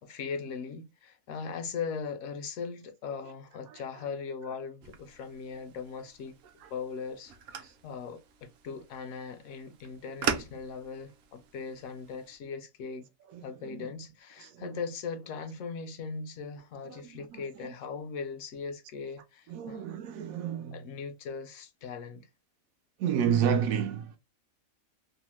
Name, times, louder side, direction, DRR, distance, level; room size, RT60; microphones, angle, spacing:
voice 1, 0.0-6.4 6.7-13.1 13.4-19.8 20.7-22.3, left 5 dB, 70° left, 0.9 m, -39 dB
sound 1, 4.8-12.4, right 6 dB, 65° right, 0.7 m, -41 dB
voice 2, 13.3-13.9 14.4-14.8 16.9-17.7 19.5-20.8 23.0-24.2, right 8 dB, 85° right, 1.0 m, -31 dB
2.9 x 2.0 x 3.1 m
omnidirectional pair, 1.4 m